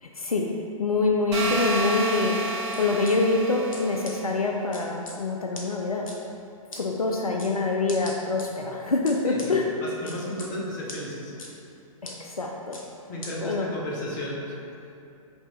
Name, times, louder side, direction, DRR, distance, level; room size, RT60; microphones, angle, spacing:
voice 1, 0.0-0.5 0.8-2.4 2.8-6.1 6.7-9.7 12.0-12.8 13.4-13.7, left 3 dB, 85° left, 1 dB, 0.4 m, -25 dB
sound 1, 1.3-4.2, right 2 dB, 50° right, 1.1 m, -30 dB
sound 2, 2.7-3.1 3.7-3.8 4.0-4.1 4.7-5.1 5.5-5.6 6.1-6.2 6.7-6.8 7.4-7.5 7.9-8.5 9.1-9.5 10.1-10.5 10.9-11.0 11.4-11.5 12.0-12.1 12.7-12.8 13.2-13.3, left 2 dB, 65° left, 0.8 m, -39 dB
voice 2, 9.2-11.3 13.1-15.0, left 1 dB, 35° left, -4 dB, 1.0 m, -34 dB
5.8 x 2.7 x 3.2 m, 2.6 s
figure-of-eight pair, 115°, 18 cm